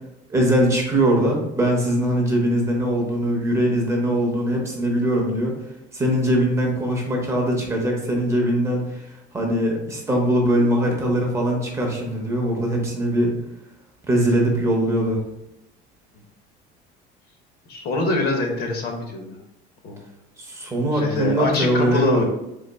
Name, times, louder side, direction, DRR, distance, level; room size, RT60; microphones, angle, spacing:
voice 1, 0.3-5.5 5.9-9.0 9.3-13.3 14.1-15.2 20.4-22.2, right 1 dB, 15° right, 0 dB, 0.7 m, -21 dB
voice 2, 17.7-19.4 19.8-20.0 20.9-22.2, left 2 dB, 50° left, 2 dB, 0.9 m, -24 dB
4.0 x 3.5 x 3.4 m, 0.87 s
cardioid pair, 160°, 20 cm